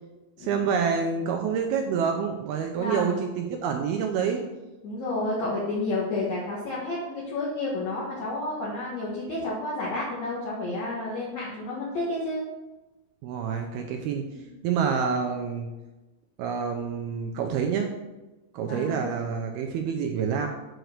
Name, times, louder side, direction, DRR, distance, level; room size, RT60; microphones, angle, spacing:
voice 1, 0.4-4.4 13.2-14.2 14.6-15.7 16.4-17.9 18.5-20.5, right 6 dB, 80° right, 3 dB, 2.3 m, -27 dB
voice 2, 2.8-3.3 4.8-12.4 14.3-14.4 18.6-19.0, left 2 dB, 60° left, -5 dB, 2.0 m, -30 dB
7.9 x 4.6 x 6.5 m, 1.1 s
omnidirectional pair, 5.1 m